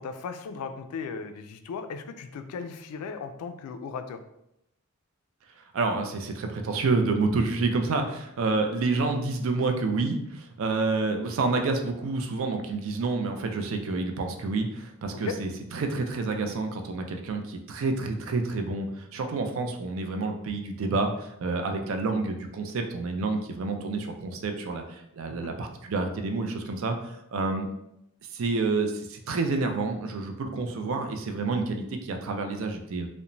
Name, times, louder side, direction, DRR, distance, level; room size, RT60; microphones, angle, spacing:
voice 1, 0.0-4.2 15.1-15.4 25.3-25.5, left 5 dB, 85° left, 12 dB, 0.3 m, -37 dB
voice 2, 5.6-27.7 28.3-33.1, right 3 dB, 60° right, 5 dB, 0.4 m, -29 dB
2.9 x 2.1 x 2.5 m, 0.80 s
head